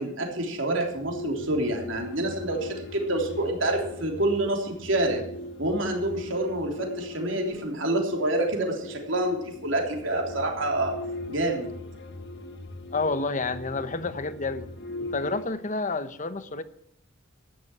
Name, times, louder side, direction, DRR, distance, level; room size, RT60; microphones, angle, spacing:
voice 1, 0.0-5.2 5.6-10.9 11.3-11.7, right 1 dB, 75° right, 1 dB, 3.5 m, -27 dB
sound 1, 0.7-15.5, left 2 dB, 60° left, 1.5 m, -40 dB
voice 2, 12.9-14.7 15.0-16.6, left 3 dB, 40° left, 12 dB, 1.0 m, -29 dB
13.5 x 10.5 x 6.1 m, 0.72 s
head